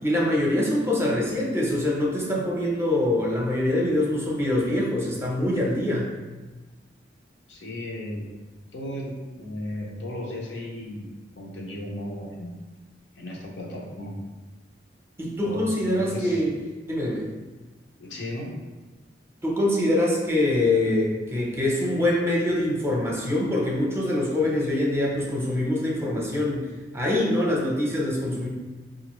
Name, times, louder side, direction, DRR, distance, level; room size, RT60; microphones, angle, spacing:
voice 1, 0.0-6.1 15.2-16.6 16.8-17.2 19.4-26.7 26.9-28.5, left 1 dB, 15° right, -3 dB, 0.7 m, -24 dB
voice 2, 7.5-8.2 8.7-11.1 11.4-12.5 13.2-14.1 15.4-15.6 15.9-16.4 18.0-18.5, left 1 dB, 75° left, -2 dB, 0.8 m, -35 dB
5.0 x 2.5 x 3.0 m, 1.2 s
head